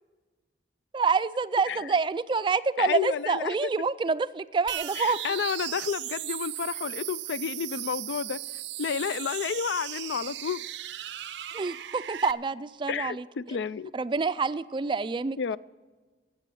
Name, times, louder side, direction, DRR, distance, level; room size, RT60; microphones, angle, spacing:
voice 1, 0.9-5.2 11.5-13.2 13.9-15.4, right 4 dB, 25° right, 0.3 m, -27 dB
voice 2, 2.8-3.5 5.0-8.4 8.8-10.7 12.9-13.9 15.4-15.6, left 7 dB, 85° left, 0.4 m, -31 dB
sound 1, 4.7-12.3, right 13 dB, 90° right, 0.5 m, -37 dB
13.5 x 7.6 x 8.5 m
head